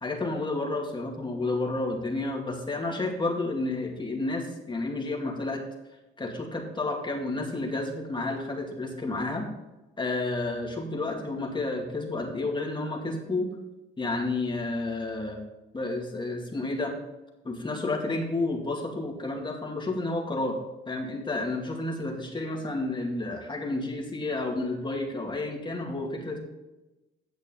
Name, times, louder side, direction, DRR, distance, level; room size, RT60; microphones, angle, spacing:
voice 1, 0.0-5.6 6.2-9.5 10.0-13.5 14.0-15.4 15.7-16.9 17.4-20.6 20.9-26.4, left 2 dB, 25° left, 0 dB, 2.3 m, -31 dB
9.7 x 7.8 x 3.8 m, 1.0 s
cardioid pair, 90°, 20 cm